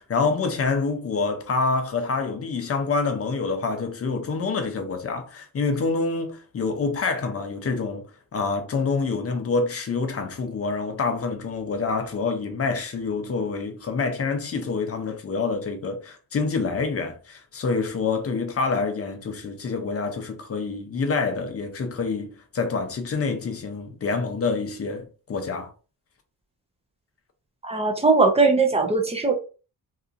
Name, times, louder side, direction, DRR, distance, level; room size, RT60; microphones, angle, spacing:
voice 1, 0.0-8.1 8.3-25.7, left 4 dB, 40° left, 0.5 m, -27 dB
voice 2, 27.6-29.3, right 3 dB, 15° right, 0.4 m, -20 dB
2.8 x 2.4 x 2.5 m
wide cardioid pair, 140°, 38 cm